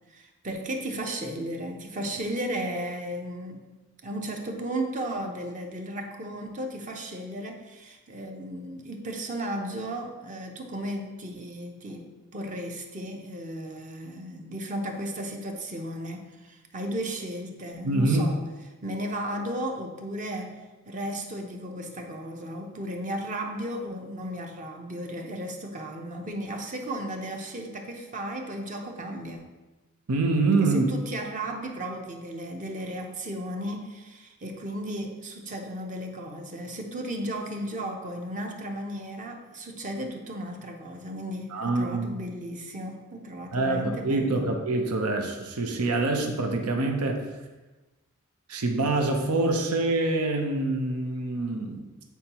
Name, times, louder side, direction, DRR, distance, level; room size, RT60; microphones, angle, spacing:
voice 1, 0.1-3.7 4.0-18.4 18.8-29.4 30.6-44.5, right 1 dB, 35° right, 3 dB, 0.7 m, -35 dB
voice 2, 17.8-18.2 30.1-30.8 41.5-42.1 43.5-47.2 48.5-51.9, right 2 dB, 90° right, 4 dB, 0.7 m, -25 dB
8.3 x 4.5 x 3.0 m, 1.1 s
head